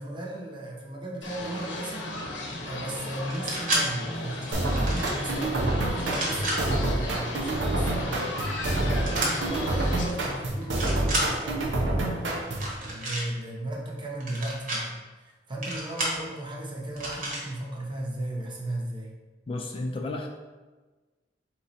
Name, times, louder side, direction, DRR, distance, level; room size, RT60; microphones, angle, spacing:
voice 1, 0.0-19.1, right 1 dB, 25° right, -2 dB, 0.8 m, -36 dB
sound 1, 1.2-10.0, left 1 dB, 90° left, 0.8 m, -35 dB
sound 2, 3.2-3.8 4.7-5.2 6.0-6.6 9.1-9.3 10.0-10.3 10.6-11.3 12.5-13.2 14.2-14.8 15.6-16.2 17.0-17.4, right 1 dB, 50° right, 1.1 m, -30 dB
sound 3, 4.5-12.7, right 1 dB, 90° right, 0.8 m, -28 dB
voice 2, 19.5-20.3, left 2 dB, 30° left, 2 dB, 0.3 m, -32 dB
3.9 x 3.0 x 4.1 m, 1.3 s
head